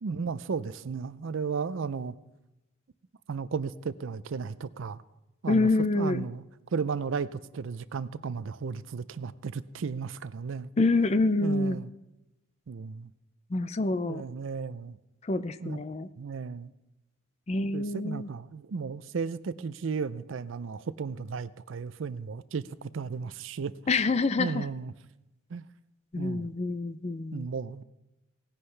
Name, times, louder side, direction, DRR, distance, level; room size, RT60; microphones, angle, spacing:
voice 1, 0.0-2.1 3.3-5.0 5.4-6.4 6.7-10.7 11.4-11.9 12.7-13.1 14.0-15.0 15.6-15.8 16.2-16.7 17.7-23.7 24.4-24.9 25.5-25.6 26.2-26.5 27.3-27.8, right 5 dB, 65° right, 16 dB, 0.4 m, -34 dB
voice 2, 5.5-6.2 10.8-11.8 13.5-14.2 15.3-16.1 17.5-18.3 23.9-24.6 26.1-27.5, left 3 dB, 30° left, 13 dB, 0.4 m, -27 dB
18.5 x 10.0 x 3.3 m, 0.98 s
head